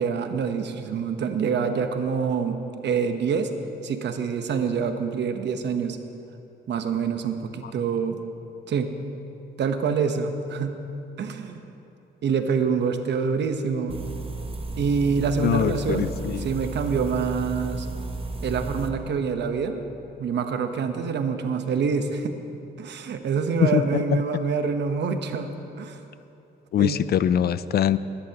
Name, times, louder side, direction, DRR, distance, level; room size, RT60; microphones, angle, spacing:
voice 1, 0.0-2.6 2.8-3.5 3.8-6.0 6.7-8.2 8.7-9.0 9.6-10.8 11.2-11.6 12.2-14.0 14.8-17.9 18.4-19.8 20.2-22.3 22.8-25.5 25.8-26.0 26.8-27.0, right 5 dB, 60° right, 7 dB, 1.0 m, -26 dB
sound 1, 13.9-18.9, right 2 dB, 30° right, 0.9 m, -33 dB
voice 2, 15.4-16.5 23.6-24.0 26.7-28.0, left 10 dB, 55° left, 16 dB, 0.4 m, -23 dB
19.5 x 11.5 x 2.9 m, 2.8 s
cardioid pair, 90°, 20 cm